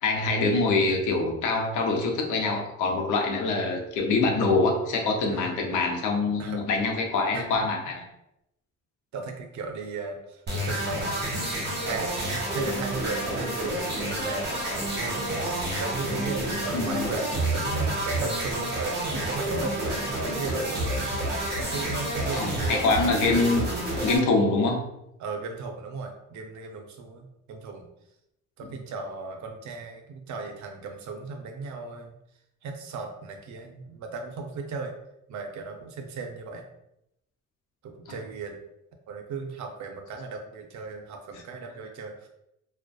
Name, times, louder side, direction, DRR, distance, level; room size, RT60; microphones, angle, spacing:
voice 1, 0.0-8.0 16.7-17.1 22.3-23.6 24.0-24.9, left 3 dB, 85° left, 2 dB, 0.6 m, -25 dB
voice 2, 5.3-5.7 6.4-6.7 7.3-7.4 9.1-11.5 11.8-14.5 15.0-15.3 15.7-21.0 21.6-22.8 25.2-27.9 28.6-32.1 32.6-34.9 35.3-36.6 37.8-38.6 39.1-42.3, right 4 dB, 70° right, 4 dB, 0.5 m, -36 dB
sound 1, 10.5-24.2, right 1 dB, 35° right, 0.9 m, -29 dB
2.5 x 2.2 x 2.2 m, 0.84 s
cardioid pair, 90°, 30 cm